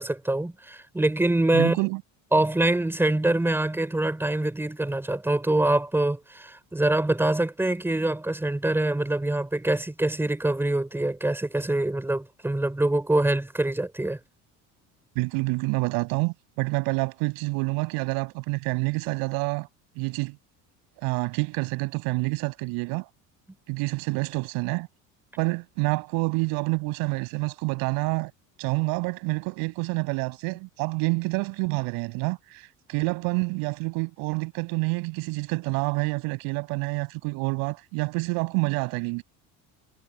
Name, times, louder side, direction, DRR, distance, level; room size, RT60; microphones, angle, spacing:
voice 1, 0.0-1.8 2.3-14.2, right 2 dB, 5° right, 4.3 m, -24 dB
voice 2, 1.5-2.0 15.2-19.7 20.0-20.4 21.0-23.1 23.7-24.9 25.4-28.3 28.6-39.2, right 29 dB, 80° right, 7.5 m, -28 dB
cardioid pair, 140°, 35 cm